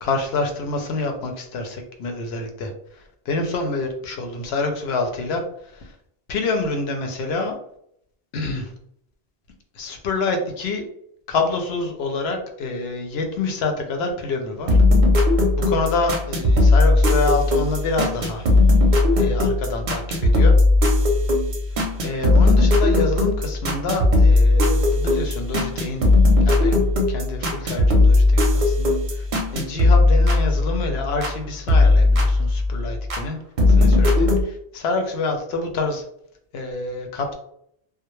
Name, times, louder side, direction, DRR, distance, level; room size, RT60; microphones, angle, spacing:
voice 1, 0.0-2.7 3.0-5.4 5.7-5.9 6.3-7.5 8.3-8.7 9.8-10.8 11.3-14.8 15.7-18.5 19.2-20.5 22.0-26.0 26.4-26.8 27.1-29.3 29.5-33.4 33.7-36.0 36.5-37.3, left 3 dB, 80° left, 4 dB, 0.8 m, -27 dB
sound 1, 14.7-31.4 31.7-33.2 33.6-34.4, left 2 dB, 55° right, 0.6 m, -17 dB
2.2 x 2.0 x 2.9 m, 0.69 s
omnidirectional pair, 1.0 m